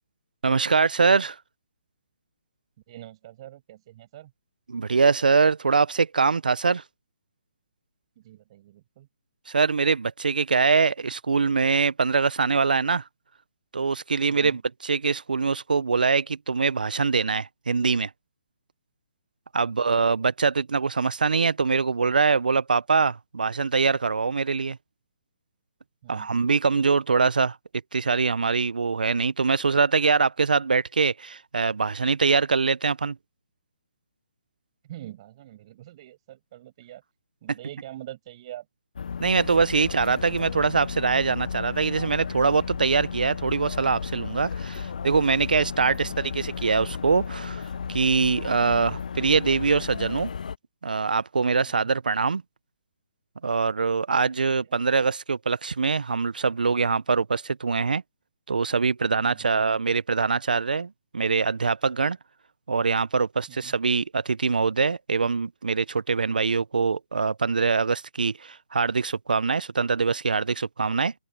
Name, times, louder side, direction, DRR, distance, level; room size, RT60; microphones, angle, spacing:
voice 1, 0.4-1.4 4.7-6.8 9.5-13.0 13.7-18.1 19.5-24.8 26.1-27.6 27.9-33.2 39.2-47.6 47.9-50.3 50.8-52.4 53.4-58.0 58.5-62.2 62.7-71.1, right 4 dB, 75° right, 1.0 m, -23 dB
voice 2, 2.9-4.3 8.2-9.1 14.3-14.6 19.6-20.0 26.0-26.4 34.8-37.0 37.4-38.6 44.7-44.9 45.9-46.2 51.6-51.9 59.2-59.6 63.5-63.7, right 14 dB, 40° right, 6.4 m, -44 dB
sound 1, 39.0-50.6, left 6 dB, 65° left, 0.8 m, -34 dB
figure-of-eight pair, 140°, 5 cm